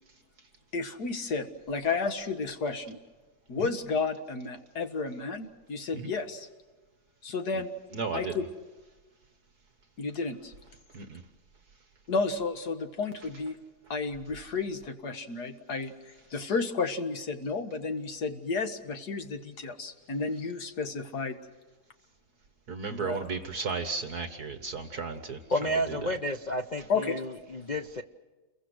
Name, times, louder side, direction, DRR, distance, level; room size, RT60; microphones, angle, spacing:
voice 1, 0.7-3.0 3.5-6.5 7.2-7.7 8.1-8.5 10.0-10.5 12.1-13.6 13.9-21.4 22.9-23.2 26.9-27.2, left 4 dB, 55° left, 7 dB, 2.2 m, -32 dB
voice 2, 7.9-8.4 10.9-11.2 22.7-26.1, right 4 dB, 55° right, 7 dB, 1.8 m, -35 dB
voice 3, 25.5-28.0, equal, 70° left, 7 dB, 0.4 m, -31 dB
30.0 x 23.0 x 6.4 m, 1.2 s
omnidirectional pair, 2.2 m